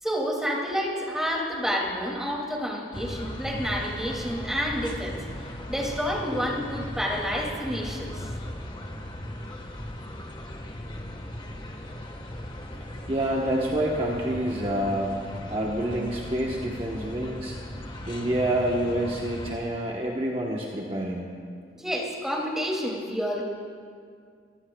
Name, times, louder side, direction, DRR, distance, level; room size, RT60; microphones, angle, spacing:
voice 1, 0.0-8.2 21.7-23.4, equal, 5° right, -2 dB, 2.5 m, -29 dB
sound 1, 2.9-19.5, left 1 dB, 30° left, 1.4 m, -37 dB
voice 2, 13.1-15.2 15.5-17.6 18.1-21.3, right 1 dB, 35° right, -2 dB, 1.2 m, -27 dB
25.0 x 18.0 x 2.3 m, 2.1 s
head